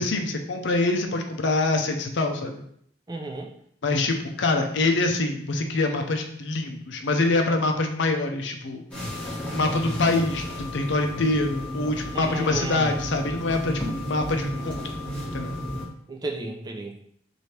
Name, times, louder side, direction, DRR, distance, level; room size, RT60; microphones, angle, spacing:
voice 1, 0.0-2.5 3.8-8.8 9.5-14.8 15.3-15.6, left 2 dB, 60° left, 4 dB, 0.5 m, -25 dB
voice 2, 3.1-3.5 12.1-13.0 16.1-16.9, right 2 dB, 20° right, 1 dB, 0.4 m, -33 dB
sound 1, 8.9-15.9, left 1 dB, 5° left, 1.0 m, -33 dB
3.2 x 2.7 x 4.3 m, 0.67 s
head